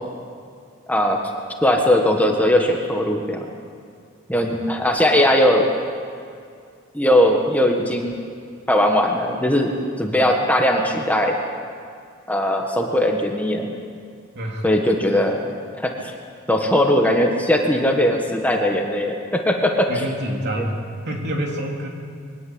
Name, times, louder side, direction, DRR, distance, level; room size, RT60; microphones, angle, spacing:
voice 1, 1.6-3.5 4.3-5.7 6.9-8.1 8.7-9.7 10.0-11.3 12.3-13.7 14.6-15.4 15.8-16.1 16.5-19.9 20.6-20.7, left 1 dB, 5° left, 1 dB, 1.5 m, -19 dB
voice 2, 14.3-14.7 15.1-15.2 19.9-20.8 21.0-21.9, equal, 50° right, 0 dB, 3.3 m, -27 dB
22.5 x 18.5 x 8.0 m, 2.3 s
head